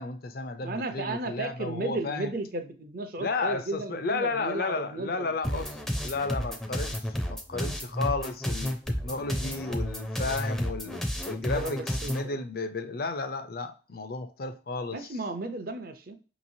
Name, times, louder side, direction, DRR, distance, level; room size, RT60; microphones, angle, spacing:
voice 1, 0.0-2.3 3.2-15.1, left 3 dB, 50° left, 0.5 m, -33 dB
voice 2, 0.6-5.6 11.3-12.4 14.9-16.1, right 2 dB, 50° right, 0.6 m, -35 dB
sound 1, 5.4-12.3, equal, ahead, 0.5 m, -31 dB
5.5 x 3.0 x 2.7 m
head